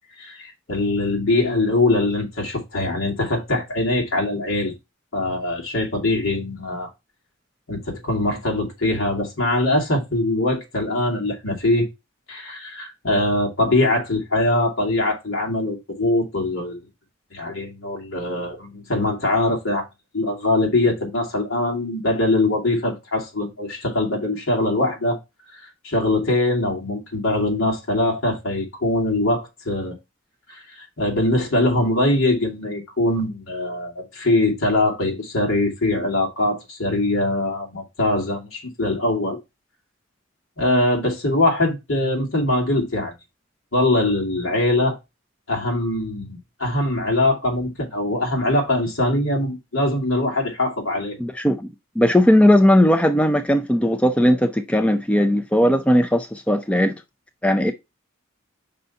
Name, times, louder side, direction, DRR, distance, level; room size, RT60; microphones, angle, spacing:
voice 1, 0.2-4.7 5.1-6.9 7.7-11.9 12.3-16.8 17.3-19.8 20.1-25.2 25.8-29.9 30.5-30.6 31.0-39.4 40.6-43.1 43.7-45.0 45.5-51.2, left 2 dB, 75° left, 2.4 m, -22 dB
voice 2, 51.2-51.7 52.0-57.0 57.4-57.7, left 1 dB, 5° left, 0.4 m, -17 dB
5.4 x 4.1 x 5.6 m
head